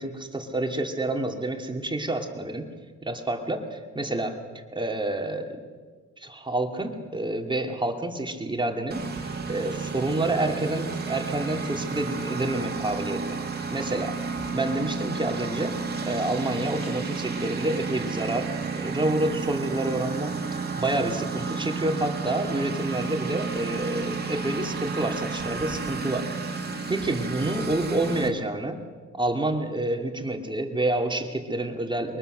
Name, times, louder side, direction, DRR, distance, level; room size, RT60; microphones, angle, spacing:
voice 1, 0.0-2.7 3.0-5.6 6.2-13.4 13.7-14.2 14.5-26.3 26.9-28.8 29.1-32.2, right 2 dB, 15° right, 4 dB, 2.5 m, -28 dB
Engine, 8.9-28.3, right 4 dB, 35° right, 2.5 m, -32 dB
23.0 x 19.5 x 6.7 m, 1.5 s
cardioid pair, 90°, 30 cm